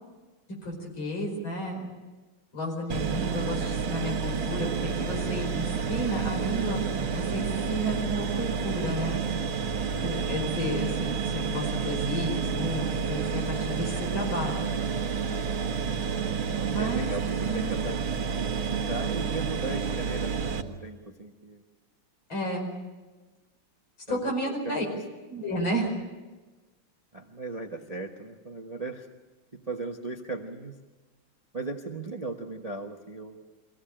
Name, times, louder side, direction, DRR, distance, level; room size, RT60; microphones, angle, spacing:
voice 1, 0.6-2.0 2.5-6.8 7.1-9.2 10.0-14.7 16.7-17.1 17.4-17.7 22.3-22.7 24.1-24.8 25.3-25.9, equal, 70° left, 1 dB, 6.0 m, -32 dB
sound 1, 2.9-20.6, right 6 dB, 75° right, 2.2 m, -30 dB
voice 2, 16.8-21.6 24.1-24.8 27.1-29.1 29.5-30.7 31.5-33.4, right 3 dB, 25° right, 3 dB, 0.9 m, -37 dB
24.0 x 17.0 x 8.8 m, 1.2 s
omnidirectional pair, 2.3 m